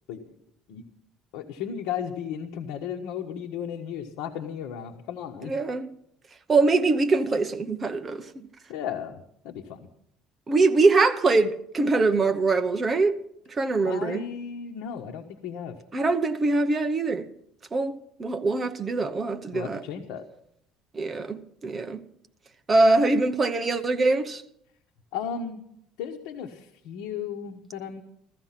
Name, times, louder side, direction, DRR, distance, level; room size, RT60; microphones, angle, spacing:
voice 1, 1.3-5.5 8.7-9.9 13.8-15.8 19.5-20.3 25.1-25.6 26.0-28.0, left 8 dB, 75° left, 1.2 m, -35 dB
voice 2, 5.4-5.9 6.5-8.5 10.5-13.2 13.6-14.2 15.9-17.3 17.7-19.8 20.9-22.0 22.7-24.4, right 3 dB, 20° right, 0.9 m, -23 dB
15.0 x 14.5 x 5.9 m
cardioid pair, 165°, 0 cm